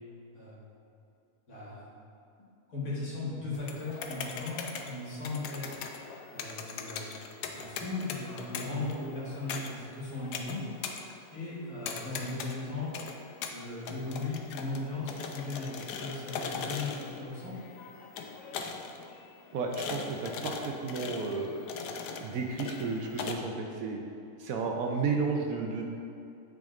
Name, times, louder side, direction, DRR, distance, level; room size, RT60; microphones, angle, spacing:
voice 1, 0.3-0.7 1.5-1.9 2.7-5.8 6.3-7.2 7.5-10.6 11.3-13.0 13.5-17.5, left 3 dB, 60° left, -8 dB, 2.1 m, -37 dB
sound 1, 3.5-23.3, left 5 dB, 90° left, 1.2 m, -41 dB
voice 2, 19.5-21.6 22.2-24.0 24.4-25.8, right 4 dB, 70° right, 2 dB, 1.0 m, -32 dB
9.1 x 5.1 x 2.4 m, 2.7 s
omnidirectional pair, 1.7 m